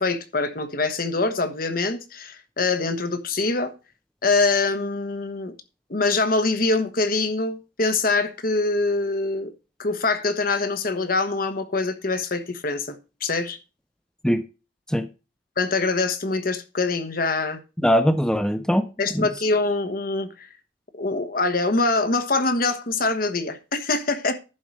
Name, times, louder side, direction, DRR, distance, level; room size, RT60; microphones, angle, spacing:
voice 1, 0.0-3.7 4.2-5.5 5.9-9.5 9.8-13.6 15.6-17.6 19.0-20.5 20.9-24.4, left 3 dB, 55° left, 1.2 m, -24 dB
voice 2, 17.8-19.3, equal, 5° left, 0.5 m, -21 dB
11.0 x 4.7 x 6.2 m
head